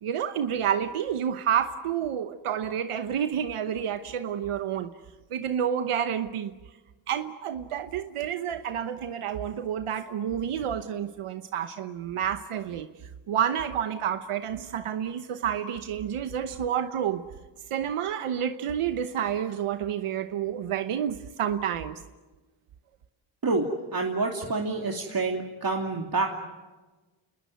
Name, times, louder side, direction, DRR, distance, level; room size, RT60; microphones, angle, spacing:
voice 1, 0.0-4.9 5.3-6.5 7.1-17.2 17.7-22.0, right 9 dB, 85° right, 1.1 m, -29 dB
voice 2, 23.9-26.3, right 3 dB, 45° right, 2.7 m, -27 dB
28.0 x 21.0 x 9.4 m
cardioid pair, 65°, 49 cm